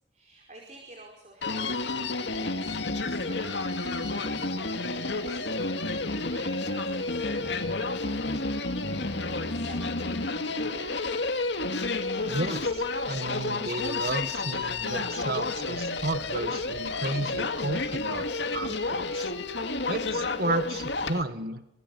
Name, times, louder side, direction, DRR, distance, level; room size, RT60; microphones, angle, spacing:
voice 1, 0.1-5.5 5.8-8.5 9.2-11.1, right 2 dB, 40° right, 1 dB, 5.0 m, -51 dB
Human voice, 1.4-21.2, left 3 dB, 70° left, 2.3 m, -30 dB
voice 2, 12.3-19.3 19.9-21.6, right 2 dB, 55° right, 10 dB, 1.5 m, -33 dB
27.0 x 22.0 x 7.8 m, 0.85 s
head